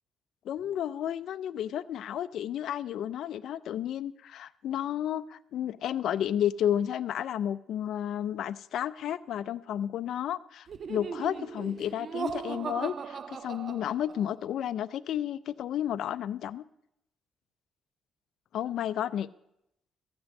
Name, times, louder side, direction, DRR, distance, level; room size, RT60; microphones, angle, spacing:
voice 1, 0.4-16.6 18.5-19.3, left 10 dB, 75° left, 14 dB, 0.5 m, -32 dB
Laughter, 10.7-14.4, right 6 dB, 50° right, 0.7 m, -38 dB
14.5 x 6.2 x 8.2 m, 0.79 s
cardioid pair, 90°, 0 cm